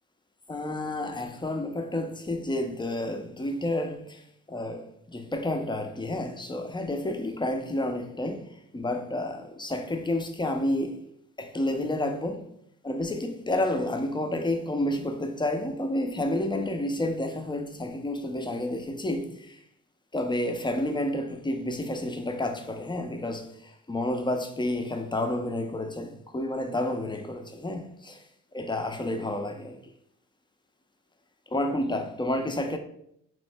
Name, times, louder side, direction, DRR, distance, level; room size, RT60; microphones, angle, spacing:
voice 1, 0.5-11.0 11.4-12.5 12.8-19.6 20.1-28.2 28.5-29.9 31.5-32.8, left 1 dB, 15° left, 0.4 m, -30 dB
3.1 x 2.0 x 3.3 m
supercardioid pair, 50°, 35 cm